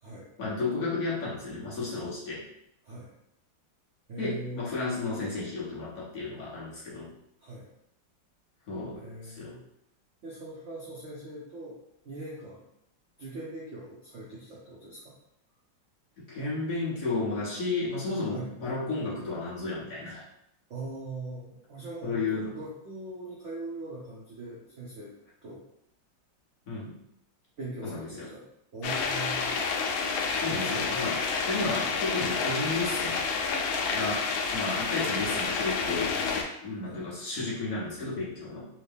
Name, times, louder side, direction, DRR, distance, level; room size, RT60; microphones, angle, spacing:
voice 1, 0.4-2.4 4.2-7.1 8.7-9.6 16.2-20.2 22.0-22.5 26.7-26.9 27.8-28.3 30.3-31.2 31.4-33.2 33.9-36.2 36.6-38.7, left 3 dB, 55° left, -7 dB, 1.2 m, -33 dB
voice 2, 4.1-4.8 7.4-7.7 8.9-9.6 10.2-11.8 12.0-12.6 13.2-15.1 18.3-18.5 20.7-25.1 25.4-25.6 27.6-28.5 28.7-29.5 30.5-31.0 36.8-37.0, right 2 dB, 65° right, -5 dB, 0.7 m, -41 dB
sound 1, 28.8-36.4, left 5 dB, 85° left, 1.4 m, -29 dB
3.5 x 2.8 x 3.4 m, 0.79 s
omnidirectional pair, 2.2 m